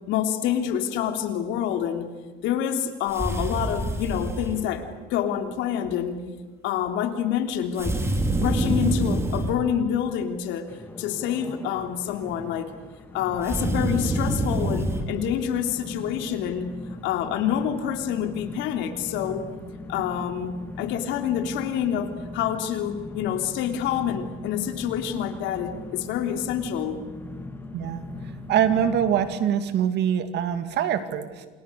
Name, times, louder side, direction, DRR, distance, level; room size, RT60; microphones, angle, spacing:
voice 1, 0.1-2.1 2.4-6.2 6.6-8.0 8.4-10.7 11.0-12.7 13.1-16.7 17.0-19.5 19.9-27.0, left 9 dB, 80° left, 6 dB, 3.2 m, -27 dB
sound 1, 3.1-4.6 7.8-9.6 13.4-15.1, right 1 dB, 15° right, 3.3 m, -26 dB
sound 2, 10.7-29.4, left 2 dB, 10° left, 2.7 m, -40 dB
voice 2, 27.7-28.1 28.5-31.5, right 9 dB, 60° right, 9 dB, 2.6 m, -24 dB
28.5 x 28.0 x 6.9 m, 1.3 s
cardioid pair, 125°, 19 cm